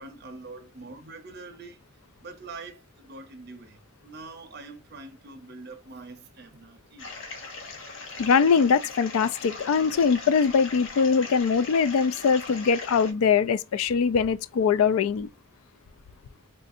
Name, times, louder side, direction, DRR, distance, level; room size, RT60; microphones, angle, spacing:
voice 1, 0.0-1.8 2.2-7.1, right 3 dB, 45° right, 0.5 m, -44 dB
sound 1, 7.0-13.1, left 3 dB, 60° left, 0.8 m, -40 dB
voice 2, 8.2-15.3, left 6 dB, 80° left, 0.3 m, -22 dB
3.7 x 2.5 x 2.5 m
head